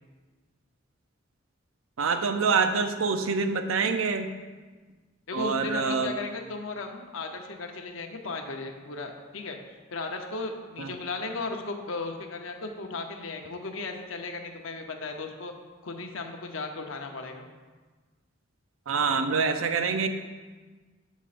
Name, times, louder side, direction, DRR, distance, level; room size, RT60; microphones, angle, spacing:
voice 1, 2.0-4.3 5.3-6.1 10.8-11.0 18.9-20.1, right 5 dB, 85° right, 8 dB, 0.6 m, -26 dB
voice 2, 5.3-9.6 9.9-15.5 15.8-17.5, left 3 dB, 75° left, 4 dB, 0.8 m, -36 dB
8.2 x 7.3 x 2.5 m, 1.4 s
head